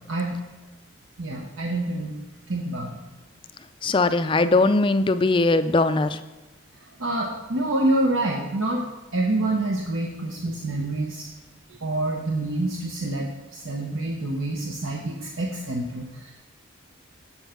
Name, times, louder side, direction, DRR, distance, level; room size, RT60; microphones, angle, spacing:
voice 1, 0.1-0.4 1.2-2.2 2.5-3.0 7.0-8.9 9.1-11.3 11.7-16.3, right 2 dB, 80° right, 0 dB, 1.1 m, -27 dB
voice 2, 3.8-6.2, left 2 dB, 25° left, 11 dB, 0.4 m, -20 dB
7.8 x 7.3 x 5.7 m, 1.1 s
head